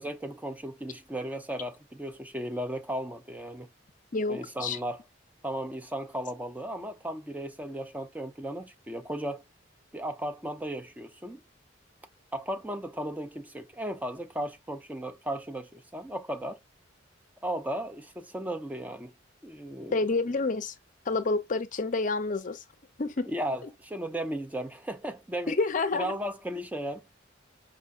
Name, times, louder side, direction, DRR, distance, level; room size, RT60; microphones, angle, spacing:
voice 1, 0.0-3.7 4.3-5.0 5.4-9.4 9.9-11.4 12.3-16.6 17.4-19.1 19.4-20.0 23.3-25.6 26.0-27.1, right 1 dB, 10° right, 0.4 m, -35 dB
voice 2, 4.1-4.8 19.9-20.7 21.1-22.6 23.0-23.3 23.6-23.7 25.5-26.1, left 3 dB, 40° left, 0.5 m, -28 dB
4.9 x 3.5 x 2.5 m
head